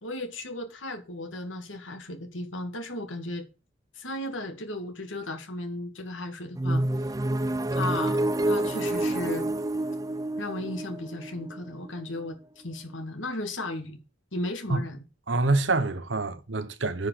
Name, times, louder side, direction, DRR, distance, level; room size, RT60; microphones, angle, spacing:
voice 1, 0.0-3.5 4.0-6.8 7.7-8.2 8.4-9.5 10.4-14.0 14.3-15.0, left 2 dB, 90° left, 2.4 m, -35 dB
sound 1, 6.6-12.3, right 1 dB, 20° right, 0.4 m, -28 dB
voice 2, 15.3-17.1, right 2 dB, 75° right, 1.1 m, -26 dB
9.5 x 5.1 x 8.0 m
head